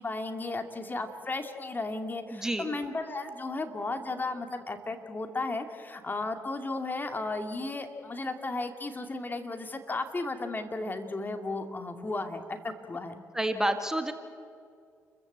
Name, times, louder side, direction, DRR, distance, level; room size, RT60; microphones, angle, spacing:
voice 1, 0.0-13.2, left 2 dB, 30° left, 6 dB, 2.4 m, -34 dB
voice 2, 2.3-2.7 13.3-14.1, right 1 dB, 10° right, 7 dB, 2.1 m, -29 dB
29.5 x 15.0 x 8.2 m, 2.3 s
hypercardioid pair, 45°, 7 cm